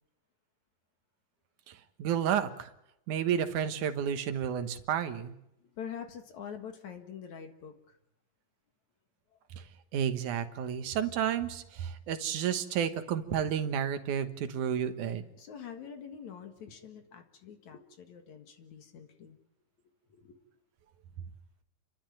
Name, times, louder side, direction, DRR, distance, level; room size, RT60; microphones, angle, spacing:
voice 1, 2.0-2.7 3.1-5.3 9.9-15.2, right 9 dB, 70° right, 9 dB, 2.8 m, -31 dB
voice 2, 5.6-8.0 15.4-19.4 20.1-20.4, left 7 dB, 65° left, 6 dB, 3.0 m, -45 dB
29.0 x 12.5 x 9.1 m, 0.83 s
omnidirectional pair, 3.7 m